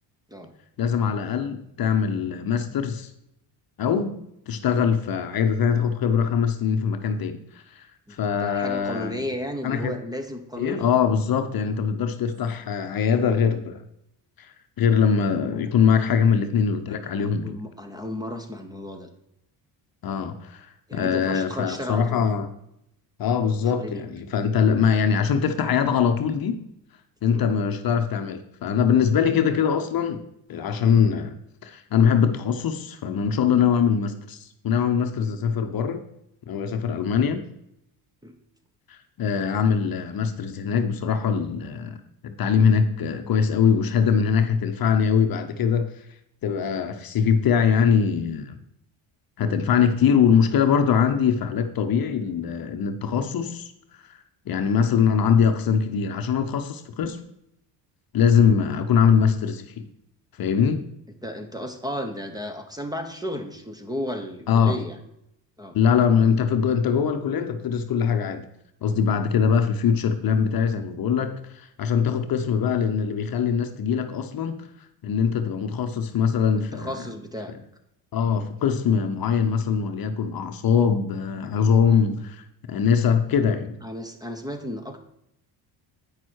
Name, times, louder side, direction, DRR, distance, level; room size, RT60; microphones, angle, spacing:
voice 1, 0.8-3.1 3.8-4.2 4.5-7.4 7.8-7.9 8.2-9.2 9.6-9.9 10.6-13.8 14.4-14.5 14.8-17.6 20.0-22.5 23.2-26.6 27.2-30.2 30.5-34.4 34.6-36.0 36.5-37.4 38.9-42.0 42.2-45.9 46.4-48.5 49.4-53.7 54.1-54.2 54.5-57.2 58.1-59.9 60.4-60.8 64.5-64.8 65.7-68.4 68.8-74.6 75.0-76.9 78.1-83.8, left 7 dB, 50° left, 0.9 m, -22 dB
voice 2, 8.1-10.9 16.9-19.1 20.9-22.2 23.7-24.0 27.3-27.5 35.2-35.3 38.2-38.3 49.4-49.5 58.4-58.6 61.2-65.0 65.6-65.8 76.7-77.5 83.8-85.0, equal, 10° right, 1.0 m, -34 dB
8.7 x 6.2 x 4.6 m
cardioid pair, 90°, 46 cm